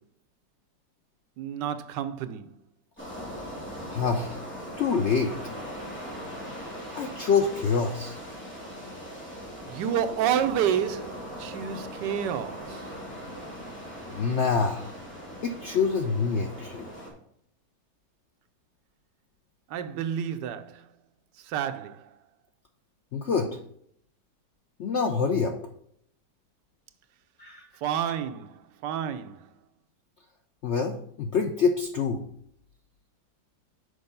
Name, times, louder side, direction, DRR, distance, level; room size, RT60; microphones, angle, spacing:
voice 1, 1.4-2.5 9.7-12.9 19.7-20.9 21.4-22.1 27.8-29.5, right 9 dB, 85° right, 1.3 m, -30 dB
sound 1, 3.0-17.1, equal, 5° left, 2.3 m, -40 dB
voice 2, 3.9-4.4 4.8-5.3 6.9-8.2 14.1-14.9 15.4-16.9 23.1-23.6 24.8-25.6 27.4-27.7 30.6-32.2, left 5 dB, 70° left, 0.6 m, -26 dB
6.7 x 4.8 x 5.4 m
omnidirectional pair, 1.9 m